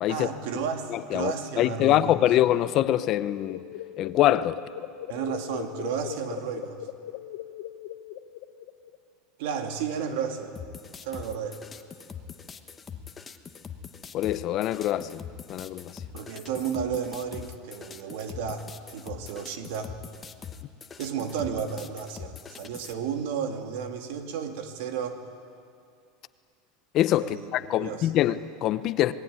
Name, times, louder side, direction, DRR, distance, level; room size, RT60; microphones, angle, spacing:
voice 1, 0.1-2.2 5.1-6.8 9.4-10.5 11.0-11.6 16.1-19.9 21.0-25.2 27.2-28.1, right 7 dB, 70° right, 2.6 m, -33 dB
voice 2, 0.9-3.6 4.0-4.6 14.1-15.2 15.5-15.9 26.9-29.1, left 13 dB, 40° left, 0.7 m, -24 dB
sound 1, 2.5-9.0, left 12 dB, 70° left, 1.2 m, -40 dB
sound 2, 10.6-22.9, left 7 dB, 15° left, 1.1 m, -43 dB
26.5 x 20.5 x 9.6 m
supercardioid pair, 160°, 0 cm